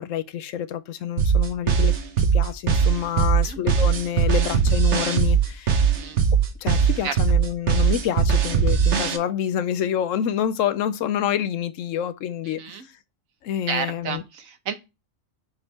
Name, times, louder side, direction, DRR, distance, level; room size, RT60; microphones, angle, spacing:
voice 1, 0.0-5.8 6.6-12.6 13.4-14.2, left 10 dB, 75° left, 0.9 m, -27 dB
sound 1, 1.2-9.2, right 7 dB, 60° right, 1.2 m, -19 dB
voice 2, 5.8-6.2 7.0-7.1 12.4-12.9 13.7-14.7, right 6 dB, 85° right, 1.4 m, -31 dB
6.9 x 3.5 x 4.1 m
omnidirectional pair, 1.4 m